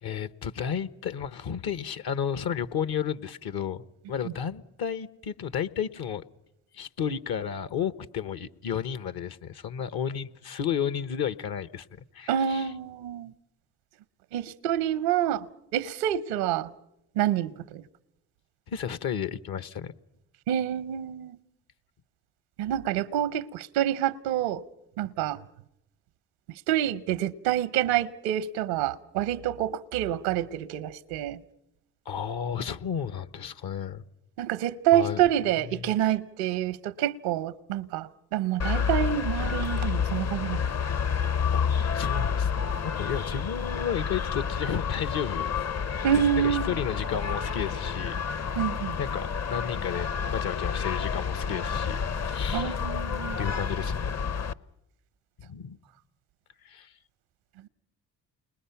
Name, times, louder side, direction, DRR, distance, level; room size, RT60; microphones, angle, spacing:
voice 1, 0.0-6.2 6.7-11.9 12.1-12.7 18.7-19.9 32.0-34.0 34.9-35.2 35.5-35.9 41.5-45.5 46.4-48.4 49.0-52.8 53.4-54.1 55.4-55.8 56.6-56.9, left 8 dB, 60° left, 1.1 m, -33 dB
voice 2, 12.3-13.3 14.3-15.5 15.7-16.7 17.2-17.8 20.5-21.4 22.6-24.6 25.0-25.4 26.7-31.4 34.4-40.6 46.0-46.7 48.6-49.0 52.5-53.4, right 11 dB, 85° right, 0.8 m, -27 dB
sound 1, 38.6-54.5, left 6 dB, 35° left, 0.8 m, -29 dB
29.0 x 21.0 x 5.7 m
hypercardioid pair, 50°, 43 cm